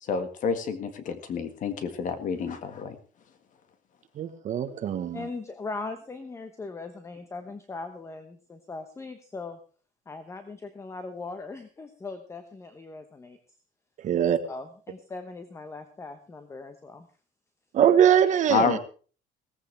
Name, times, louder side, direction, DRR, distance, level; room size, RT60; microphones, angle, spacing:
voice 1, 0.0-3.0 18.5-18.8, left 6 dB, 45° left, 9 dB, 1.8 m, -29 dB
voice 2, 4.2-5.3 14.0-14.4 17.7-18.8, right 9 dB, 40° right, 9 dB, 1.2 m, -22 dB
voice 3, 5.1-9.6 10.1-13.4 14.2-17.1, left 3 dB, 15° left, 9 dB, 1.0 m, -39 dB
17.5 x 15.0 x 3.4 m, 0.40 s
cardioid pair, 160°, 19 cm